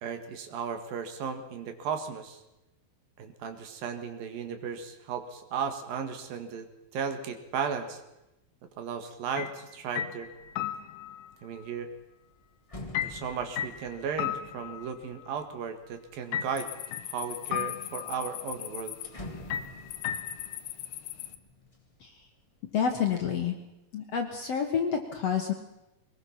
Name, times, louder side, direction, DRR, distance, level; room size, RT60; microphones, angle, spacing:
voice 1, 0.0-2.4 3.2-6.7 6.9-8.0 8.8-10.3 11.4-11.9 13.0-16.7 17.1-18.9, right 6 dB, 70° right, 7 dB, 3.3 m, -35 dB
sound 1, 9.4-9.6 10.0-11.3 12.9-15.3 16.3-17.1 17.5-18.3 19.5-20.6, left 10 dB, 75° left, 2.2 m, -35 dB
sound 2, 10.3-10.6 11.0-16.4 17.0-17.6 18.0-18.1 18.4-22.3 22.7-23.3, left 1 dB, 25° left, 0.6 m, -48 dB
sound 3, 16.4-21.4, left 13 dB, 90° left, 2.9 m, -41 dB
voice 2, 22.7-23.6 23.9-25.5, left 7 dB, 55° left, 3 dB, 2.0 m, -29 dB
22.5 x 20.5 x 5.8 m, 0.93 s
omnidirectional pair, 4.4 m